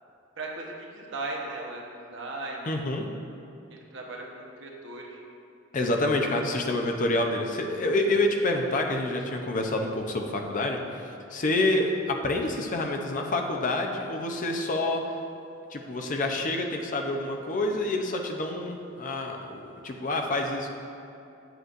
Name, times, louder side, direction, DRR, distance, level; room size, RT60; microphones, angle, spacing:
voice 1, 0.4-2.8 3.7-5.2, right 2 dB, 65° right, -1 dB, 1.0 m, -37 dB
voice 2, 2.7-3.1 5.7-15.0 15.7-20.7, left 2 dB, 40° left, 3 dB, 0.6 m, -27 dB
8.0 x 7.8 x 2.5 m, 2.7 s
head